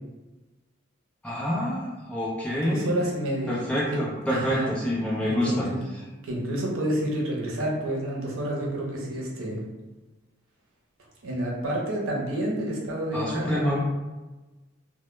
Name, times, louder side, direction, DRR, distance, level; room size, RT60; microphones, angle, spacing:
voice 1, 1.2-2.9 3.5-5.7 13.1-13.8, equal, 5° left, -6 dB, 0.5 m, -27 dB
voice 2, 2.6-3.6 3.9-4.0 4.3-4.7 5.2-5.8 6.2-9.6 11.2-13.6, right 1 dB, 90° right, -2 dB, 0.6 m, -29 dB
2.1 x 2.0 x 3.0 m, 1.2 s
head